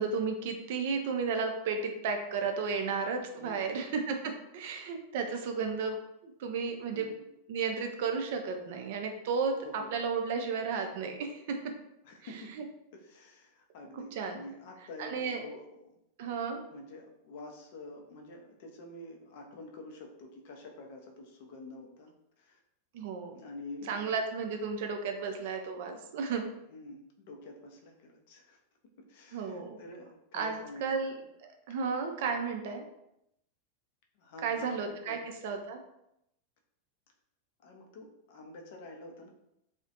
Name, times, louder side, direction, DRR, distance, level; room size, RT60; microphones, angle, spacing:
voice 1, 0.0-7.1 7.5-11.6 13.9-14.4 15.0-15.4 16.2-16.6 22.9-23.3 23.9-26.4 29.3-29.8 30.3-31.1 31.4-32.8 34.4-35.2 35.4-35.8, right 5 dB, 50° right, 5 dB, 0.3 m, -33 dB
voice 2, 3.4-3.7 6.9-7.1 9.6-9.9 12.0-12.5 12.9-16.0 16.7-22.6 23.3-24.0 26.7-28.6 29.1-31.3 31.8-32.0 32.3-32.4 34.2-35.2 37.6-39.3, left 2 dB, 50° left, 2 dB, 0.4 m, -48 dB
2.3 x 2.1 x 2.7 m, 0.82 s
figure-of-eight pair, 90°, 0 cm